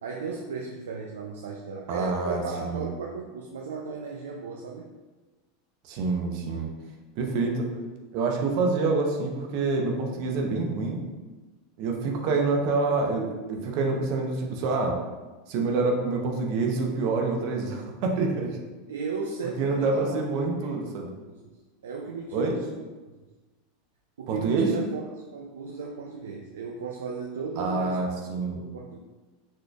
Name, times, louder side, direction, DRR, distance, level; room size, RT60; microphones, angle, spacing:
voice 1, 0.0-4.9 18.9-20.7 21.0-21.5 21.8-22.8 24.2-28.0 28.5-29.0, right 4 dB, 90° right, -1 dB, 0.4 m, -36 dB
voice 2, 1.9-2.8 5.8-6.7 7.2-7.7 8.1-11.0 11.8-15.0 15.5-18.5 19.6-21.1 22.3-22.5 24.3-24.7 27.6-28.6, right 3 dB, 60° right, 1 dB, 0.7 m, -27 dB
4.2 x 3.1 x 2.3 m, 1.2 s
hypercardioid pair, 105°, 0 cm